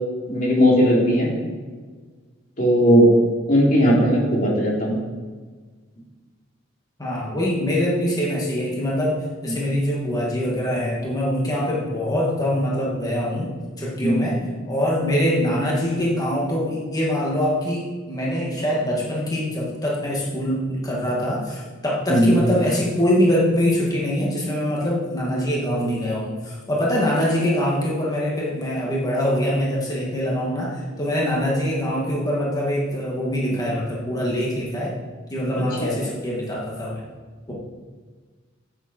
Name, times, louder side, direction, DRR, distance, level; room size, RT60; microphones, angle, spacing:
voice 1, 0.3-1.3 2.6-3.1 3.5-5.0 9.5-9.6 14.0-14.3 22.1-22.4 35.8-36.0, equal, 45° left, -4 dB, 3.4 m, -17 dB
voice 2, 7.0-9.2 9.4-13.5 13.8-14.4 14.7-34.9 35.3-37.0 37.5-37.6, equal, 20° left, -4 dB, 2.1 m, -23 dB
12.5 x 9.3 x 4.5 m, 1.5 s
head